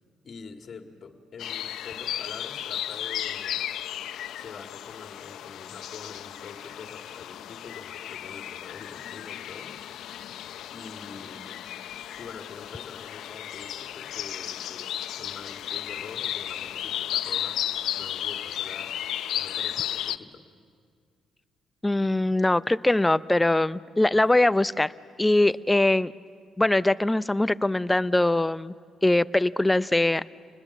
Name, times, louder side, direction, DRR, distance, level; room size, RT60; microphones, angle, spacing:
voice 1, 0.2-3.6 4.4-9.7 10.7-11.6 12.2-17.6 18.0-18.9 19.4-20.5, left 5 dB, 50° left, 5 dB, 2.1 m, -45 dB
sound 1, 1.4-20.2, left 11 dB, 75° left, 0.6 m, -34 dB
voice 2, 21.8-24.9 25.2-26.1 26.6-28.7 29.0-30.2, left 2 dB, 15° left, 16 dB, 0.6 m, -22 dB
28.0 x 20.5 x 7.2 m, 2.1 s
supercardioid pair, 65°, 0 cm